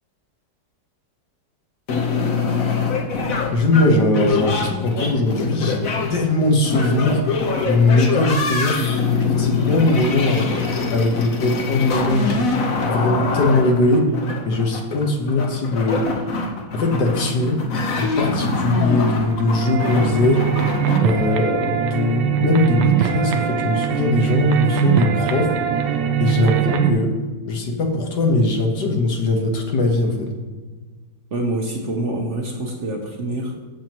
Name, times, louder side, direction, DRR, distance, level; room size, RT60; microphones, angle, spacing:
sound 1, 1.9-21.0, left 4 dB, 55° left, 1.3 m, -24 dB
voice 1, 3.5-7.2 7.6-8.8 9.2-10.5 10.9-14.1 14.5-16.0 16.7-17.6 18.0-20.5 21.0-25.5 26.2-27.2 27.5-30.3, left 2 dB, 70° left, 2 dB, 1.9 m, -20 dB
sound 2, 19.2-26.9, right 9 dB, 80° right, 1.4 m, -21 dB
voice 2, 31.3-33.6, right 1 dB, 50° right, 1 dB, 1.2 m, -26 dB
13.0 x 7.5 x 3.0 m, 1.4 s
omnidirectional pair, 1.9 m